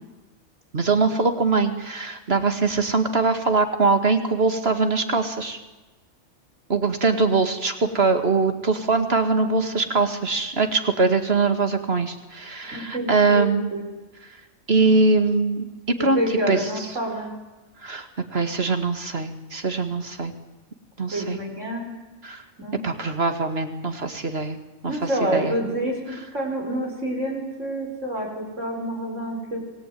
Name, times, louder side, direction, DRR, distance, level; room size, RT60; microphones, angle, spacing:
voice 1, 0.7-5.6 6.7-13.7 14.7-15.7 16.0-16.2 16.5-16.6 17.8-20.3 21.0-21.4 22.2-22.4 22.8-24.6 24.8-25.0 25.3-25.5, right 4 dB, 55° right, 7 dB, 2.4 m, -22 dB
voice 2, 9.3-9.9 12.7-13.8 16.1-17.3 21.1-21.9 22.6-22.8 24.9-26.0 26.3-29.6, right 1 dB, 85° right, 2 dB, 6.0 m, -28 dB
26.5 x 19.0 x 9.4 m, 1.1 s
omnidirectional pair, 1.3 m